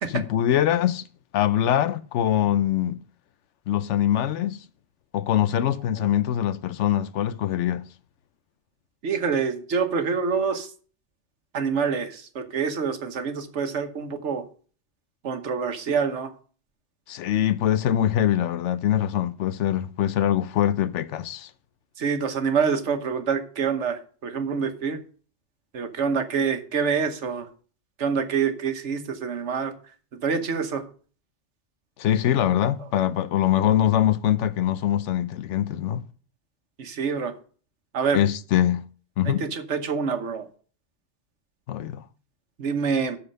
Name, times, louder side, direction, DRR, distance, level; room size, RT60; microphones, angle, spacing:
voice 1, 0.0-1.0 1.3-3.0 3.7-4.6 5.1-7.9 17.1-21.5 32.0-36.0 38.1-38.8 39.2-39.5 41.7-42.0, left 11 dB, 80° left, 0.9 m, -23 dB
voice 2, 9.0-10.7 11.5-14.4 15.2-16.3 22.0-25.0 25.7-27.5 28.0-29.7 30.2-30.8 36.8-37.3 37.9-38.2 39.3-40.5 42.6-43.2, right 6 dB, 75° right, 1.4 m, -26 dB
13.0 x 4.3 x 5.4 m
omnidirectional pair, 1.2 m